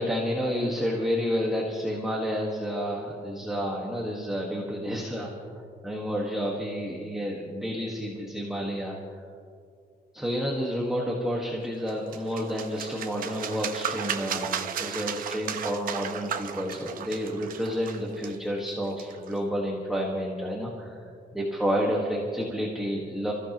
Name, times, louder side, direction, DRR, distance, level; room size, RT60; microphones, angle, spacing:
voice 1, 0.0-9.2 10.1-21.0 21.3-23.3, equal, ahead, -2 dB, 1.6 m, -30 dB
sound 1, 11.9-19.4, right 8 dB, 55° right, 0.9 m, -35 dB
29.0 x 15.0 x 3.0 m, 2.3 s
cardioid pair, 170°, 17 cm